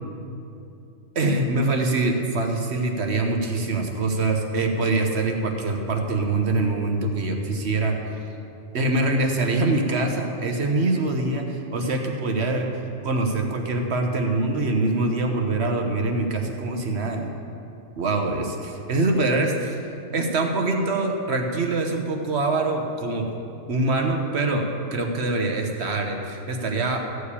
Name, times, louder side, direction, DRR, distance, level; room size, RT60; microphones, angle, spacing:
voice 1, 1.1-8.0 8.7-12.7 13.0-17.4 18.0-19.8 20.1-23.3 23.7-24.6 24.9-27.0, right 2 dB, 55° right, 3 dB, 1.3 m, -24 dB
14.0 x 4.9 x 8.4 m, 2.7 s
omnidirectional pair, 1.4 m